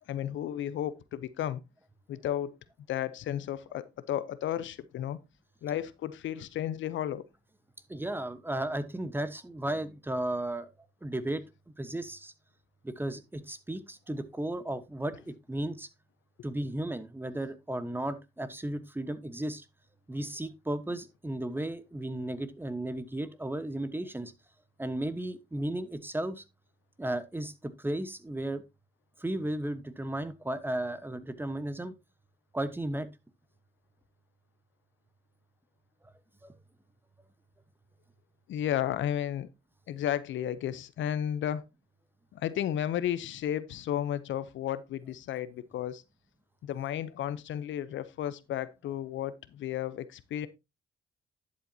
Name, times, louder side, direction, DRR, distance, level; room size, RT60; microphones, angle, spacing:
voice 1, 0.1-1.6 2.1-2.6 2.9-5.2 5.6-7.2 38.5-39.5 39.9-41.6 42.3-46.0 46.6-50.5, left 11 dB, 70° left, 0.7 m, -33 dB
voice 2, 7.9-10.7 11.0-11.4 11.8-12.3 12.8-15.9 16.4-19.6 20.1-24.3 24.8-26.4 27.0-28.6 29.2-31.9 32.5-33.1 36.0-36.1 36.4-36.5, right 1 dB, 10° right, 1.1 m, -34 dB
11.5 x 7.7 x 2.8 m
cardioid pair, 90°, 20 cm